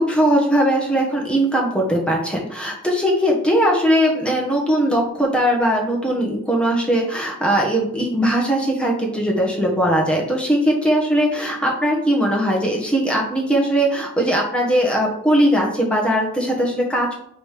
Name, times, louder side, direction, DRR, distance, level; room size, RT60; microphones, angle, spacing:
voice 1, 0.0-17.1, equal, 5° left, -2 dB, 1.4 m, -19 dB
4.8 x 3.8 x 5.1 m, 0.75 s
head